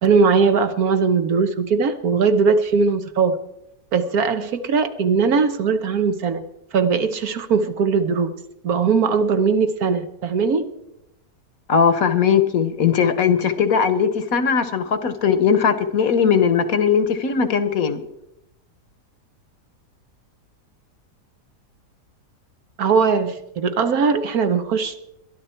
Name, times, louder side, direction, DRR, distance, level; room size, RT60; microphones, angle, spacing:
voice 1, 0.0-3.4 3.9-6.4 6.7-8.3 8.6-10.7 22.8-24.9, right 5 dB, 65° right, 9 dB, 1.4 m, -19 dB
voice 2, 11.7-18.0, left 6 dB, 60° left, 11 dB, 1.3 m, -19 dB
22.0 x 12.5 x 4.4 m, 0.86 s
omnidirectional pair, 1.8 m